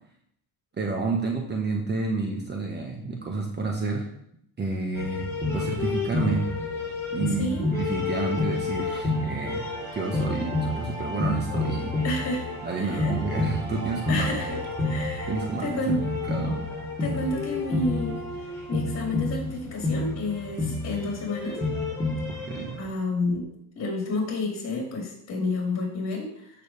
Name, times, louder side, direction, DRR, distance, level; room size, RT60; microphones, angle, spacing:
voice 1, 0.8-4.1 4.6-5.3 5.5-6.4 7.1-9.6 9.9-12.0 12.6-14.3 15.3-15.8 16.3-16.6 22.5-22.7, right 3 dB, 25° right, 1 dB, 1.4 m, -29 dB
sound 1, 4.9-22.9, left 2 dB, 5° left, 3.3 m, -29 dB
voice 2, 7.4-7.7 12.0-12.5 12.7-13.1 14.1-15.3 15.6-16.0 17.0-18.2 18.7-21.6 22.8-23.5 23.7-26.5, left 2 dB, 40° left, -3 dB, 4.6 m, -30 dB
sound 2, 7.4-18.5, right 2 dB, 75° right, 3.6 m, -40 dB
14.0 x 6.6 x 3.5 m, 0.71 s
cardioid pair, 145°, 40 cm